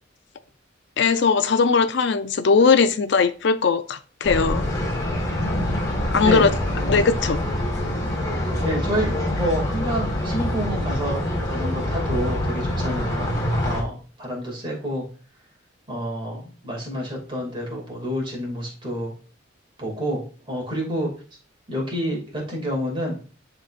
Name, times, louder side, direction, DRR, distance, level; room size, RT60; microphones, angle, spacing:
voice 1, 1.0-4.7 6.1-6.5 6.9-7.4, left 5 dB, 65° left, 0.4 m, -19 dB
sound 1, 4.2-13.8, left 1 dB, 20° left, 1.5 m, -25 dB
voice 2, 6.8-7.1 8.6-13.3 13.6-15.0 15.9-19.1 19.8-21.1 21.7-23.2, equal, 25° right, 2.3 m, -28 dB
10.5 x 3.9 x 2.5 m
head